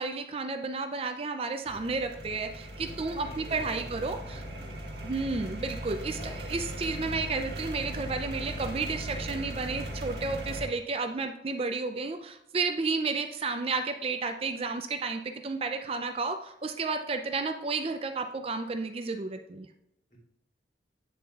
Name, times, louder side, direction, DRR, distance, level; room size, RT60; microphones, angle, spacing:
voice 1, 0.0-4.4 5.0-19.7, right 4 dB, 30° right, 6 dB, 0.4 m, -32 dB
sound 1, 1.6-10.7, equal, 65° right, 1.4 m, -38 dB
voice 2, 3.2-3.9 4.3-4.8 6.1-6.4 20.1-20.2, right 1 dB, 45° left, -3 dB, 2.7 m, -49 dB
8.5 x 7.0 x 2.4 m, 0.82 s
head